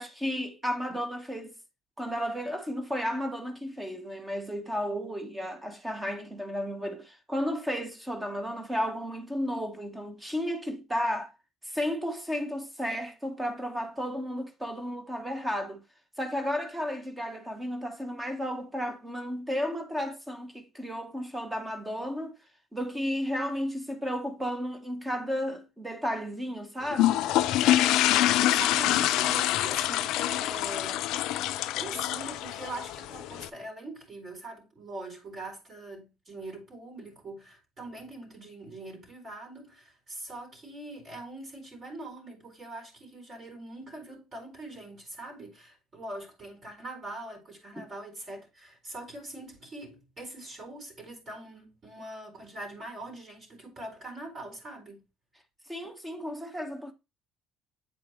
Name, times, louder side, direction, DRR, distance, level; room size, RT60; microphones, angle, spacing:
voice 1, 0.0-1.6 2.0-11.3 11.6-15.8 16.2-22.3 22.7-27.2 47.8-47.9 55.7-56.9, equal, 10° right, 1.2 m, -33 dB
sound 1, 26.9-33.5, left 14 dB, 70° left, 0.4 m, -26 dB
voice 2, 28.4-31.1 31.7-55.0, right 2 dB, 45° right, 4.4 m, -42 dB
8.3 x 4.7 x 3.0 m
hypercardioid pair, 70°, 0 cm